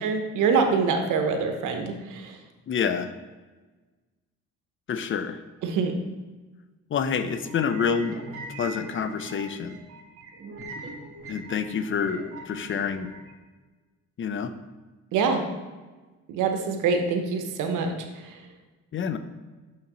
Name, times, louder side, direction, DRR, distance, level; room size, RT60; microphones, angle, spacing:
voice 1, 0.0-2.4 5.6-5.9 15.1-15.4 16.3-17.9 18.2-18.4, right 5 dB, 90° right, 5 dB, 0.9 m, -25 dB
voice 2, 2.7-3.1 4.9-5.4 6.9-8.2 8.6-9.8 11.3-13.1 14.2-14.5 18.9-19.2, left 6 dB, 40° left, 10 dB, 0.5 m, -27 dB
sound 1, 7.2-13.3, right 2 dB, 50° right, 1.3 m, -41 dB
6.5 x 5.7 x 3.0 m, 1.3 s
cardioid pair, 90°, 30 cm